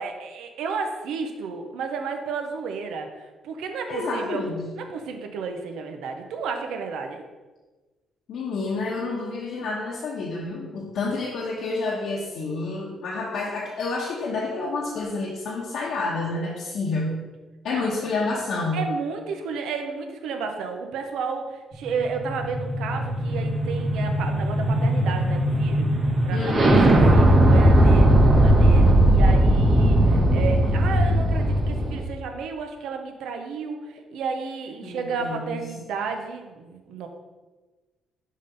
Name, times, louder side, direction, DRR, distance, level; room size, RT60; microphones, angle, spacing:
voice 1, 0.0-4.4 4.8-7.2 17.7-17.9 18.7-25.9 26.2-37.1, right 5 dB, 85° right, 4 dB, 0.8 m, -32 dB
voice 2, 3.9-4.7 8.3-17.2 17.6-18.8 26.3-26.9 34.8-35.7, left 3 dB, 75° left, -5 dB, 1.1 m, -29 dB
sound 1, 21.8-32.0, right 1 dB, 55° right, 1.8 m, -18 dB
6.5 x 3.7 x 5.2 m, 1.3 s
cardioid pair, 90°, 0 cm